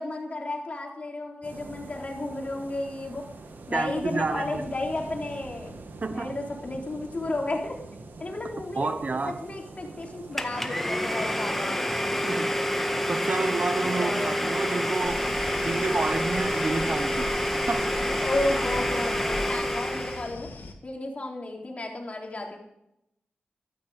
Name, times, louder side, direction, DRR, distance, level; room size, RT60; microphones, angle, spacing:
voice 1, 0.0-3.2 3.7-5.7 6.1-7.8 8.2-11.8 13.8-14.4 18.2-22.6, left 2 dB, 40° left, 3.9 m, -33 dB
sound 1, 1.4-19.3, right 3 dB, 75° right, 1.9 m, -44 dB
voice 2, 3.7-4.6 6.0-6.4 8.8-9.4 12.2-15.3 15.6-17.3 17.7-17.9, right 3 dB, 50° right, 0.8 m, -30 dB
Domestic sounds home sounds, 10.4-20.3, equal, 5° left, 1.7 m, -28 dB
sound 2, 15.0-20.7, left 2 dB, 80° left, 2.0 m, -39 dB
14.0 x 12.5 x 5.1 m
cardioid pair, 65°, 3 cm